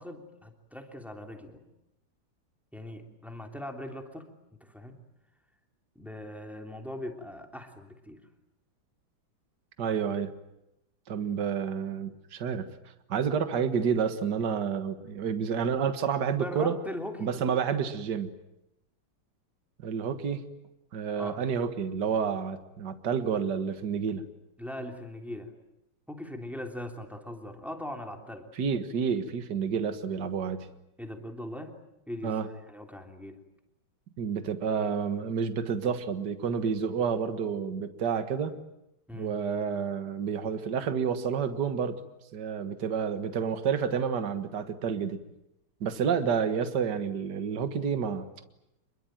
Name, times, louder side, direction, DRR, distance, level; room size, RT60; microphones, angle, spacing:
voice 1, 0.0-1.6 2.7-4.3 4.6-5.0 5.9-8.2 16.4-17.3 21.2-21.4 24.6-25.5 26.1-28.5 31.0-31.7 32.1-33.4 39.1-39.3, left 1 dB, ahead, 3 dB, 3.1 m, -40 dB
voice 2, 9.8-10.3 11.1-12.7 13.1-16.8 17.2-18.3 19.8-20.4 20.9-24.3 28.6-30.7 32.2-32.5 34.2-38.5 39.1-42.0 42.3-45.2 45.8-48.3, right 7 dB, 55° right, 9 dB, 2.1 m, -29 dB
27.0 x 22.5 x 9.1 m, 0.86 s
omnidirectional pair, 2.3 m